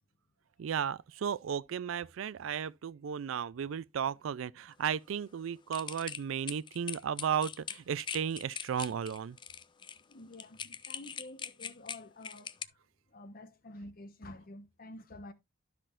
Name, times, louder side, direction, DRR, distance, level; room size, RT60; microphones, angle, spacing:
voice 1, 0.6-9.4, right 8 dB, 80° right, 0.4 m, -34 dB
sound 1, 5.7-12.6, left 8 dB, 25° left, 0.4 m, -42 dB
voice 2, 10.1-12.8 13.1-15.3, left 1 dB, 45° left, 1.0 m, -49 dB
12.0 x 5.9 x 2.4 m
head